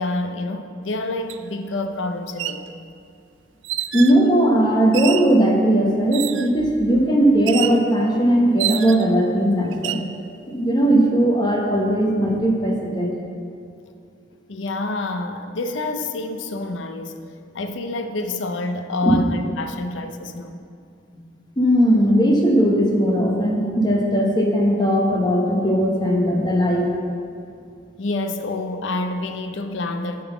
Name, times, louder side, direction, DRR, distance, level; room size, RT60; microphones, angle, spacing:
voice 1, 0.0-2.8 14.5-17.1 17.5-20.6 28.0-30.2, left 2 dB, 75° left, 7 dB, 0.6 m, -27 dB
sound 1, 1.3-1.4 2.2-2.6 3.6-4.2 4.9-5.3 6.1-6.6 7.5-7.8 8.6-9.2 9.7-10.1, right 13 dB, 75° right, 0.3 m, -28 dB
voice 2, 3.9-10.0 10.5-13.1 19.0-19.2 21.6-26.9, right 1 dB, 25° left, -1 dB, 1.0 m, -18 dB
9.2 x 3.9 x 6.9 m, 2.5 s
head